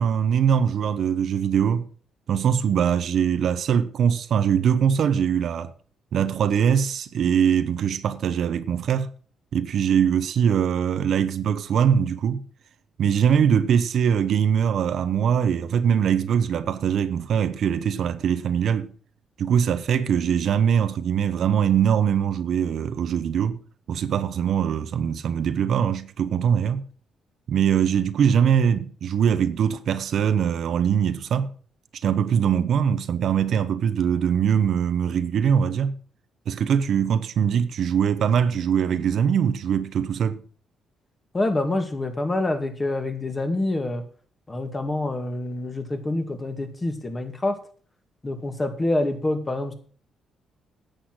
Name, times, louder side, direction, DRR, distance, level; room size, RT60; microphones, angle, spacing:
voice 1, 0.0-1.8 2.3-5.7 6.1-9.1 9.5-12.4 13.0-18.9 19.4-23.6 23.9-26.8 27.5-31.5 32.0-36.0 36.5-40.4, right 8 dB, 65° right, 0.9 m, -22 dB
voice 2, 41.3-44.0 44.5-47.6 48.2-49.7, left 2 dB, 25° left, 2.3 m, -26 dB
10.0 x 7.9 x 6.2 m
cardioid pair, 90°, 0 cm